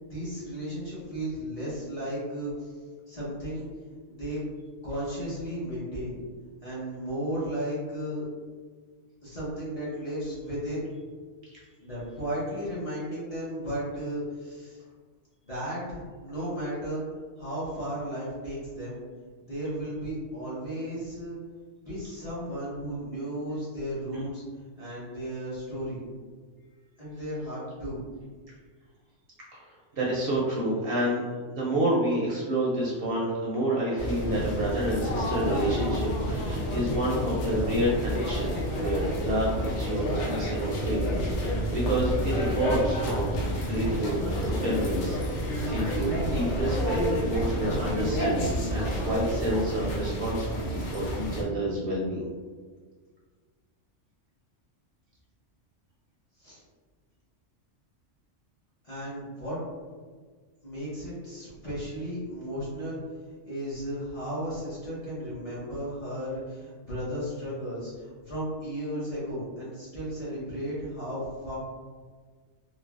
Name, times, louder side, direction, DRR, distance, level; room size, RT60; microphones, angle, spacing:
voice 1, 0.1-2.7 3.1-3.7 4.1-4.4 4.8-6.2 6.6-8.2 9.2-10.9 11.8-14.8 15.4-17.0 17.4-19.0 19.5-21.4 21.8-24.4 24.8-26.0 27.0-28.0 43.7-43.8 56.4-56.6 58.8-59.6 60.6-63.0 63.5-71.6, equal, 35° left, -9 dB, 0.7 m, -34 dB
voice 2, 29.5-43.4 43.7-44.2 44.6-52.3, right 1 dB, 60° right, -5 dB, 0.6 m, -29 dB
sound 1, 34.0-51.4, equal, 90° left, 1.0 m, -29 dB
3.1 x 2.1 x 2.4 m, 1.5 s
omnidirectional pair, 1.3 m